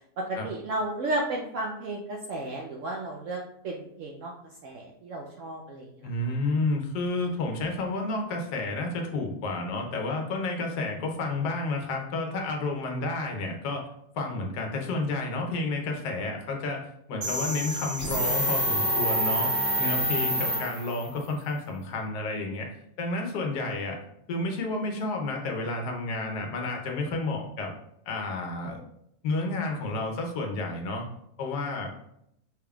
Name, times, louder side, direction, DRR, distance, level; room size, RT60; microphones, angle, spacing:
voice 1, 0.3-4.3 4.6-6.1, right 2 dB, 65° right, 0 dB, 0.8 m, -33 dB
voice 2, 6.0-13.9 14.1-16.8 17.1-22.7 23.0-24.0 24.3-27.7 28.1-28.8 29.2-31.0 31.4-31.9, left 2 dB, 90° left, 2 dB, 1.4 m, -31 dB
sound 1, 17.2-21.1, equal, 40° right, 1.5 m, -27 dB
5.7 x 3.5 x 2.3 m, 0.75 s
omnidirectional pair, 1.7 m